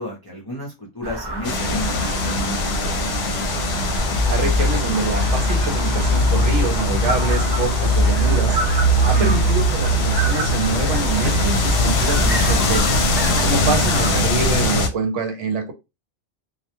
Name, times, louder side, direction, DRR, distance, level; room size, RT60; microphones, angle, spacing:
voice 1, 0.0-3.1 9.0-9.5 13.5-13.7, equal, 30° left, 0.4 m, -33 dB
sound 1, 1.0-14.1, right 1 dB, 40° right, 0.4 m, -29 dB
sound 2, 1.4-14.9, left 2 dB, 65° left, 0.8 m, -23 dB
sound 3, 4.0-12.8, equal, 60° right, 1.1 m, -21 dB
voice 2, 4.3-8.6 9.0-13.1 13.4-15.7, right 4 dB, 75° right, 0.9 m, -25 dB
2.3 x 2.1 x 2.8 m
omnidirectional pair, 1.3 m